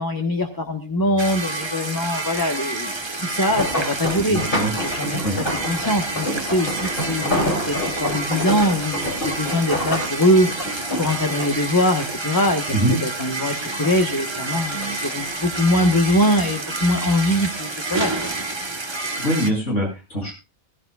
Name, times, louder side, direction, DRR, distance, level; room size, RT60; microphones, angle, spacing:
voice 1, 0.0-18.3, left 1 dB, 20° left, 4 dB, 1.2 m, -22 dB
sound 1, 1.2-19.5, right 2 dB, 25° right, 1.1 m, -29 dB
sound 2, 3.3-12.8 13.2-14.1 14.5-15.9 16.6-16.9 17.3-17.4, left 1 dB, 50° left, 3.3 m, -28 dB
voice 2, 4.3-4.7 5.2-5.4 12.7-13.0 19.2-20.3, right 1 dB, 85° left, -1 dB, 7.9 m, -22 dB
18.0 x 16.0 x 2.4 m, 0.27 s
omnidirectional pair, 1.2 m